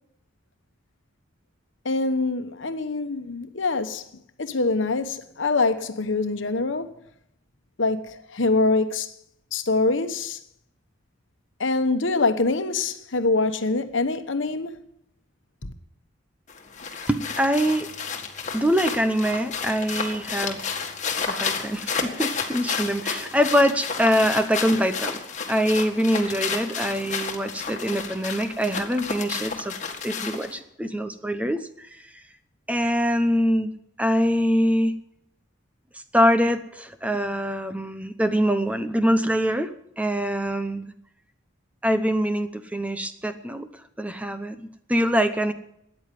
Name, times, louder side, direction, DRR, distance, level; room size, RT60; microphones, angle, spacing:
voice 1, 1.8-4.0 4.4-6.9 7.8-9.1 9.5-10.4 11.6-14.8 15.6-15.7, left 3 dB, 75° left, 1.2 m, -24 dB
sound 1, 16.5-30.6, left 5 dB, 40° left, 1.8 m, -31 dB
voice 2, 17.1-17.9 18.5-20.7 21.2-25.2 25.5-29.7 30.0-32.0 32.7-33.7 34.0-34.9 36.1-39.7 40.0-40.9 41.8-43.7 44.0-45.5, equal, 5° right, 0.8 m, -24 dB
13.5 x 9.6 x 9.3 m
head